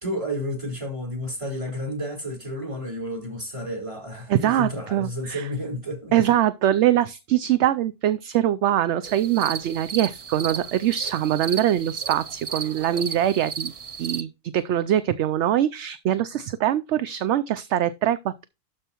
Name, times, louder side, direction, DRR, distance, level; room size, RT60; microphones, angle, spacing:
voice 1, 0.0-6.1, equal, 25° right, 4.4 m, -31 dB
voice 2, 4.3-5.5 6.1-13.7 14.0-18.4, right 11 dB, 65° right, 0.8 m, -23 dB
sound 1, 9.0-14.2, right 6 dB, 50° right, 0.4 m, -34 dB
12.5 x 5.4 x 3.0 m
omnidirectional pair, 1.4 m